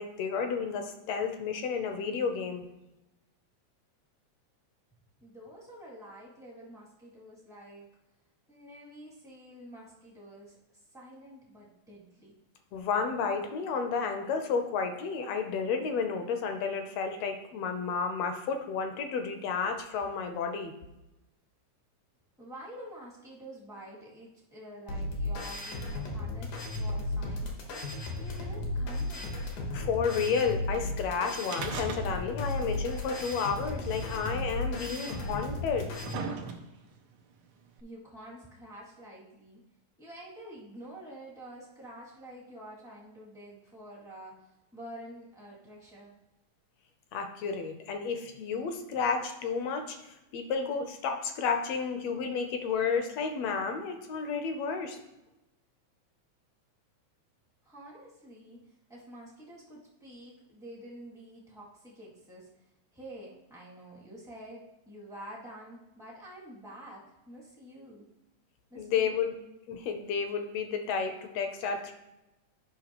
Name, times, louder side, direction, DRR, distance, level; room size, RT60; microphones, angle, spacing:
voice 1, 0.0-2.6 12.7-20.7 29.7-35.9 47.1-55.0 68.8-69.3 69.7-71.9, left 5 dB, 75° left, 5 dB, 1.6 m, -31 dB
voice 2, 5.2-7.9 8.5-12.4 22.4-27.6 28.2-29.3 37.8-39.6 40.0-46.1 57.6-58.6 58.9-62.5 62.9-68.1 68.7-69.2, right 1 dB, 5° right, -6 dB, 0.6 m, -48 dB
sound 1, 24.9-36.1, left 2 dB, 90° left, 2.8 m, -35 dB
sound 2, 31.4-32.5 32.7-32.8 33.8-33.9 34.8-34.9 35.6-36.9 37.8-37.9, right 5 dB, 80° right, 1.2 m, -38 dB
11.0 x 5.5 x 2.9 m, 0.95 s
omnidirectional pair, 3.4 m